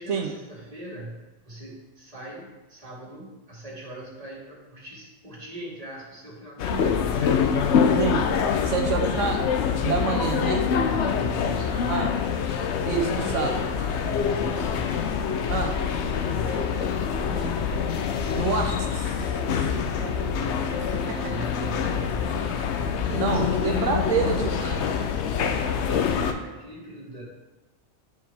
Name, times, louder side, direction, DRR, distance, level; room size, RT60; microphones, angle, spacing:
voice 1, 0.0-7.5 8.4-9.2 10.6-12.1 12.9-14.9 16.2-17.9 21.0-27.3, right 1 dB, 30° right, -6 dB, 2.1 m, -41 dB
sound 1, 6.6-26.3, left 7 dB, 70° left, 0.9 m, -25 dB
voice 2, 8.7-9.4 9.8-10.6 11.9-12.1 12.8-13.6 15.5-15.8 18.3-19.2 19.4-20.6 20.9-21.0 23.1-25.1, right 6 dB, 85° right, 2 dB, 1.1 m, -28 dB
10.0 x 4.5 x 3.4 m, 1.1 s
omnidirectional pair, 1.3 m